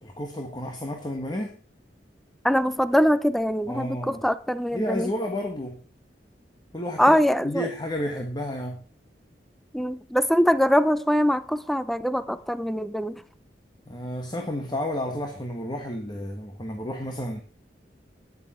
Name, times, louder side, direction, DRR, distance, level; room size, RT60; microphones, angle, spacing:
voice 1, 0.0-1.6 3.7-4.2 4.7-5.8 6.7-8.8 13.9-17.4, left 1 dB, 25° left, 1.6 m, -31 dB
voice 2, 2.4-5.1 7.0-7.7 9.7-13.2, equal, ahead, 0.5 m, -23 dB
13.5 x 9.9 x 4.4 m
head